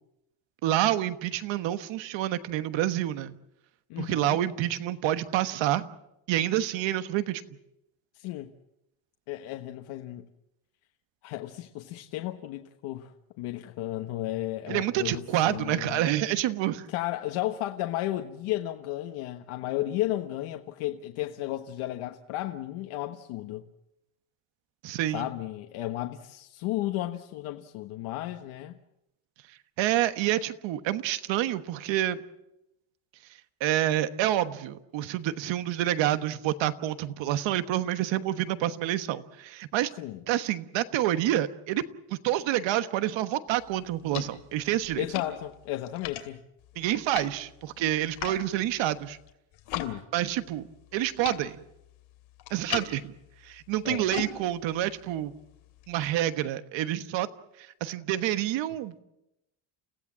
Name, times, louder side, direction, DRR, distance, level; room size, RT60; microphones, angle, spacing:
voice 1, 0.6-3.3 4.0-5.9 6.3-7.4 14.7-16.9 24.8-25.3 29.8-32.2 33.6-39.9 40.3-41.8 42.1-45.0 46.8-49.2 50.1-50.7 50.9-51.6 52.5-53.1 53.4-55.3 55.9-57.3 57.6-59.0, right 13 dB, 65° right, 1.3 m, -28 dB
voice 2, 3.9-4.4 8.1-8.5 9.3-10.3 11.2-16.1 16.9-23.7 25.1-28.8 40.0-40.2 45.0-46.4 49.7-50.0 53.8-54.1, left 15 dB, 90° left, 1.4 m, -34 dB
sound 1, 43.5-49.9 50.2-56.1, left 11 dB, 70° left, 2.7 m, -41 dB
29.5 x 16.5 x 7.4 m
cardioid pair, 175°, 49 cm